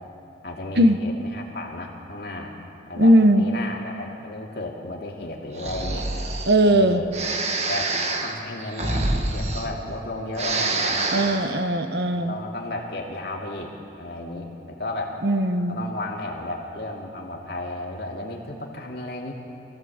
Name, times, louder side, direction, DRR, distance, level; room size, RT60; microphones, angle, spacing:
voice 1, 0.4-2.5 2.9-6.1 6.6-7.1 7.6-11.1 12.1-15.2 15.7-19.3, left 2 dB, 55° left, -1 dB, 2.6 m, -33 dB
voice 2, 3.0-3.5 6.5-7.0 11.1-12.3 15.2-15.8, right 1 dB, 60° right, 7 dB, 1.1 m, -18 dB
Breathing, 5.5-6.6 7.1-10.0 10.3-11.5, right 2 dB, 35° right, 1.4 m, -27 dB
24.0 x 15.5 x 8.1 m, 2.7 s
head